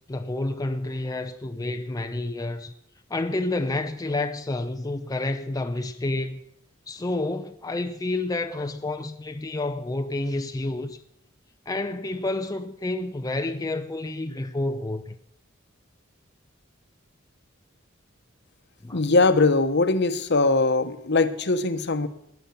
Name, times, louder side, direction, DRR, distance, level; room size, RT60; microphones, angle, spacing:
voice 1, 0.1-2.7 3.1-6.4 6.9-11.0 11.7-15.1 18.8-19.0, left 2 dB, 20° left, 0.5 m, -29 dB
voice 2, 18.9-22.1, left 3 dB, 55° left, 1.0 m, -21 dB
20.0 x 7.1 x 7.1 m
head